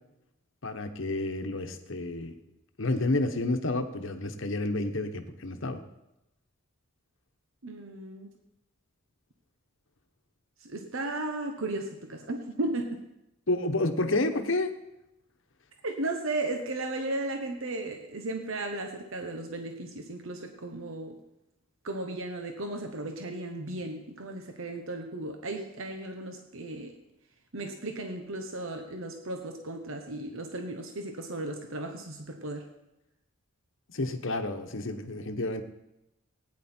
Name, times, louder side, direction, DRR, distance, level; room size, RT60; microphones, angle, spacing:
voice 1, 0.6-2.3 2.8-5.8 13.5-14.7 33.9-35.6, left 2 dB, 60° left, 7 dB, 1.1 m, -30 dB
voice 2, 7.6-8.3 10.6-13.0 15.8-21.2 21.8-26.9 27.5-32.7, right 2 dB, 65° right, 4 dB, 1.0 m, -35 dB
17.0 x 9.7 x 4.4 m, 0.90 s
head